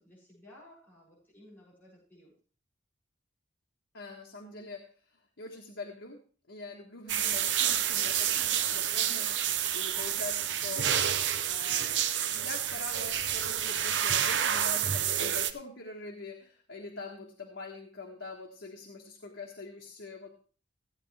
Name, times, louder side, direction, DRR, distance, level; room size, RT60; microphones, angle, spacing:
voice 1, 0.0-2.3 9.4-9.8, left 1 dB, 10° left, -8 dB, 7.1 m, -56 dB
voice 2, 3.9-4.8 5.4-6.2 6.5-10.9 11.2-12.1 12.3-20.3, left 3 dB, 85° left, 0 dB, 1.5 m, -44 dB
sound 1, 7.1-15.5, right 9 dB, 75° right, 0.7 m, -29 dB
15.5 x 9.2 x 3.4 m, 0.41 s
head